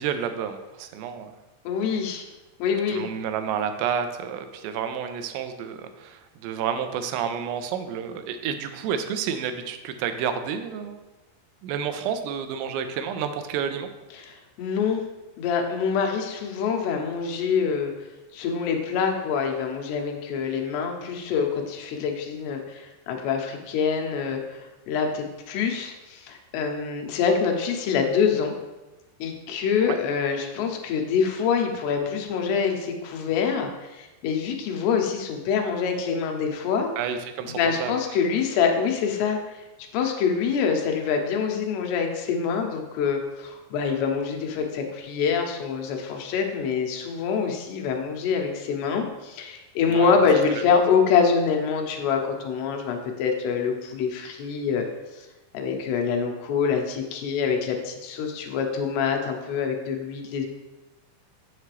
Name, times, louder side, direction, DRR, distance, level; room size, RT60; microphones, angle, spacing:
voice 1, 0.0-1.4 2.9-11.0 11.6-13.9 29.8-30.0 37.0-37.9 49.9-50.2, right 7 dB, 90° right, 8 dB, 2.8 m, -30 dB
voice 2, 1.7-2.2 2.6-3.0 14.2-15.0 15.4-17.9 18.3-28.5 29.2-36.9 37.5-39.6 39.9-54.9 55.2-55.3 55.5-60.5, left 6 dB, 85° left, 3 dB, 2.9 m, -25 dB
7.2 x 6.7 x 3.2 m, 1.1 s
omnidirectional pair, 4.8 m